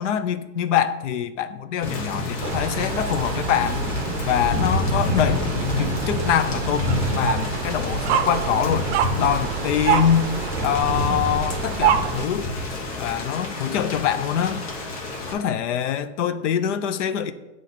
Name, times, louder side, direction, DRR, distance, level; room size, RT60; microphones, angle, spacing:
voice 1, 0.0-3.8 4.3-8.9 9.2-10.3 10.6-12.5 13.0-14.6 15.3-17.3, left 9 dB, 70° left, 12 dB, 0.6 m, -24 dB
Thunder / Rain, 1.8-15.3, left 2 dB, 55° left, 1.3 m, -28 dB
sound 1, 2.4-12.3, right 9 dB, 60° right, 0.5 m, -27 dB
sound 2, 2.5-13.1, left 1 dB, 90° left, 2.0 m, -37 dB
8.2 x 3.2 x 4.0 m, 1.0 s
supercardioid pair, 170°, 37 cm